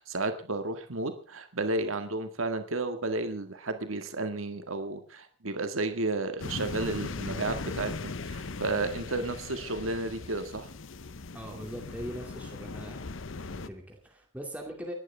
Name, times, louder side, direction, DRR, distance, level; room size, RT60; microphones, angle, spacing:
voice 1, 0.0-10.7, right 2 dB, 75° right, 8 dB, 1.8 m, -32 dB
sound 1, 6.4-13.7, left 3 dB, 65° left, 0.8 m, -39 dB
voice 2, 11.3-13.0 13.4-14.9, equal, 5° right, 1 dB, 2.4 m, -41 dB
30.0 x 11.5 x 3.5 m, 0.33 s
head